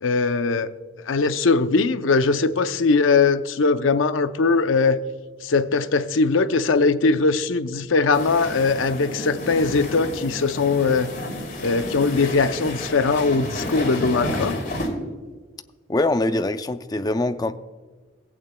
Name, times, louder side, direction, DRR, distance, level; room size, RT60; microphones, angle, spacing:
voice 1, 0.0-0.7 1.1-5.0 5.4-11.1 11.6-14.6, left 4 dB, 85° left, 0.6 m, -20 dB
sound 1, 8.1-14.9, left 1 dB, 45° left, 2.5 m, -31 dB
voice 2, 15.9-17.5, left 2 dB, 20° left, 0.4 m, -23 dB
17.5 x 8.7 x 2.2 m
head